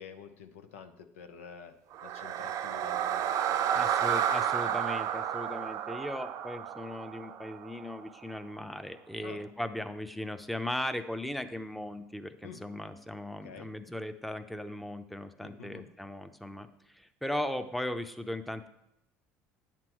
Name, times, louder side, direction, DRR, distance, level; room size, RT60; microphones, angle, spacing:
voice 1, 0.0-1.7 2.0-3.9 9.2-9.4 12.4-12.6 13.4-13.7 15.4-15.9, left 6 dB, 90° left, 7 dB, 0.8 m, -48 dB
sound 1, 1.9-8.1, right 9 dB, 60° right, 0.6 m, -31 dB
voice 2, 3.7-18.7, left 1 dB, ahead, 8 dB, 0.7 m, -38 dB
9.4 x 6.0 x 4.6 m, 0.82 s
hypercardioid pair, 75°, 7 cm